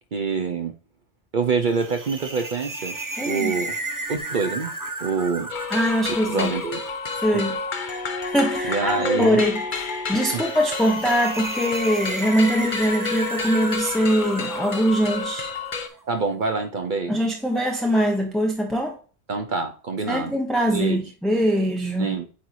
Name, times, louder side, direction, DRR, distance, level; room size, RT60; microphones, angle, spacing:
voice 1, 0.1-0.8 1.3-3.0 3.2-3.8 4.1-4.7 5.0-5.5 6.3-6.8 7.3-7.5 8.7-9.4 10.3-10.4 16.1-17.1 19.3-20.3 20.7-21.0 22.0-22.3, right 4 dB, 50° right, 0.8 m, -26 dB
sound 1, 1.7-16.0, right 2 dB, 20° right, 0.6 m, -34 dB
voice 2, 3.2-3.5 5.7-6.5 7.2-7.6 8.3-15.5 17.1-19.0 20.1-22.2, equal, ahead, 0.9 m, -22 dB
sound 2, 5.5-15.9, left 4 dB, 50° left, 0.9 m, -30 dB
8.6 x 4.6 x 2.6 m
omnidirectional pair, 1.1 m